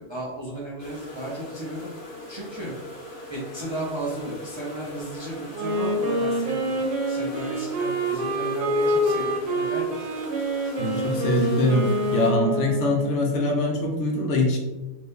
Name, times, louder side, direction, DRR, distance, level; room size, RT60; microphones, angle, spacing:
voice 1, 0.0-1.9 2.3-2.7 3.3-9.9, right 1 dB, 35° right, -5 dB, 0.4 m, -34 dB
sound 1, 0.8-12.3, left 1 dB, 55° left, 1.0 m, -40 dB
Wind instrument woodwind instrument, 5.5-13.3, equal, 85° right, 1.0 m, -26 dB
voice 2, 10.8-14.6, left 1 dB, 75° left, 1 dB, 1.0 m, -23 dB
2.8 x 2.6 x 3.5 m, 1.1 s
omnidirectional pair, 1.3 m